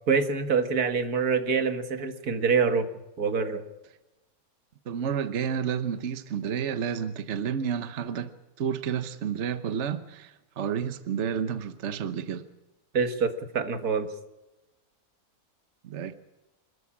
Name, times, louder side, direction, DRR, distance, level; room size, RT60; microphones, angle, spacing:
voice 1, 0.1-2.9 3.2-3.6 12.9-14.1, right 5 dB, 80° right, 2.1 m, -25 dB
voice 2, 4.9-8.3 8.6-12.4 15.8-16.1, right 7 dB, 55° right, 1.2 m, -30 dB
26.0 x 14.0 x 8.7 m
omnidirectional pair, 1.6 m